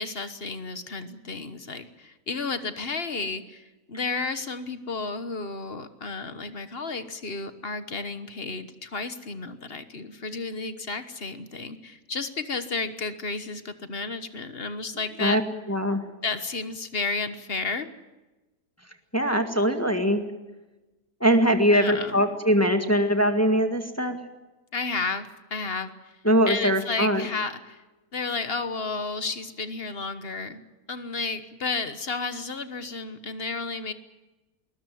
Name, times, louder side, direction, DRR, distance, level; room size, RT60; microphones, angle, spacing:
voice 1, 0.0-15.4 16.2-17.9 21.7-22.2 24.7-25.9 26.5-27.8 28.1-30.6 30.9-33.9, left 4 dB, 40° left, 11 dB, 1.3 m, -32 dB
voice 2, 15.7-16.0 19.1-20.2 21.2-24.2 26.2-27.3, equal, 10° left, 6 dB, 1.7 m, -22 dB
21.0 x 20.5 x 9.3 m, 1.1 s
omnidirectional pair, 1.8 m